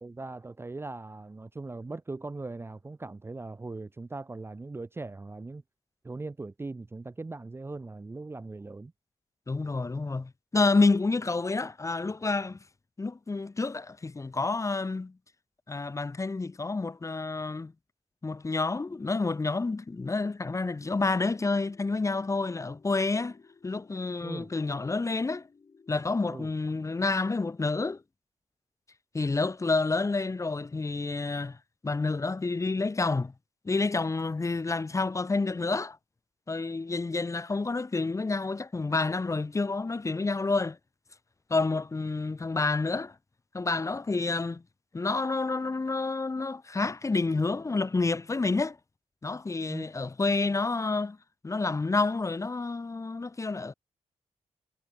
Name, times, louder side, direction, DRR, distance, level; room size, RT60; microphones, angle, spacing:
voice 1, 0.0-5.6 6.0-8.9 24.2-24.5 26.3-26.5 49.7-49.9, right 3 dB, 20° right, 0.6 m, -40 dB
voice 2, 9.5-12.6 13.0-15.1 15.7-17.7 18.2-23.4 23.6-25.5 25.9-28.0 29.1-31.6 31.8-33.3 33.6-36.0 36.5-40.8 41.5-43.1 43.5-44.6 44.9-48.8 49.2-51.2 51.4-53.7, left 3 dB, 25° left, 1.2 m, -29 dB
sound 1, 20.8-26.6, left 5 dB, 45° left, 5.3 m, -59 dB
cardioid pair, 95°, 12 cm